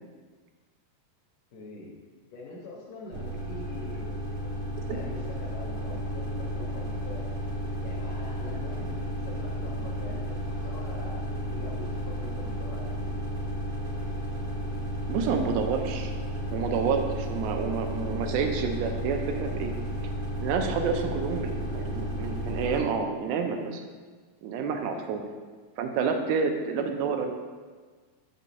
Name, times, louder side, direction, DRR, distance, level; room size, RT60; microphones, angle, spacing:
voice 1, 1.5-1.9 2.3-4.5 4.9-7.2 7.8-10.2 10.6-13.1 20.8-21.3 24.9-25.1, left 3 dB, 75° left, -3 dB, 2.0 m, -44 dB
sound 1, 3.1-22.8, equal, 60° right, 2.1 m, -33 dB
voice 2, 15.1-16.1 16.5-19.7 20.4-23.8 24.4-25.2 25.8-27.3, right 5 dB, 85° right, 4 dB, 2.5 m, -29 dB
6.8 x 6.1 x 2.7 m, 1.4 s
omnidirectional pair, 4.3 m